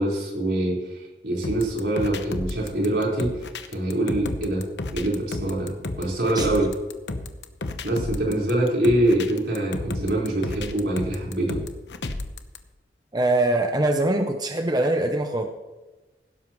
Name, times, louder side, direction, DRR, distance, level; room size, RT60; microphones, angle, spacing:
voice 1, 0.0-3.4 3.7-4.7 4.9-6.7 7.8-11.6, right 1 dB, 75° right, -4 dB, 4.6 m, -24 dB
sound 1, 1.4-12.6, left 2 dB, 85° left, 1.0 m, -33 dB
voice 2, 13.1-15.5, right 2 dB, 25° right, 5 dB, 0.7 m, -23 dB
16.0 x 12.5 x 3.1 m, 1.1 s
head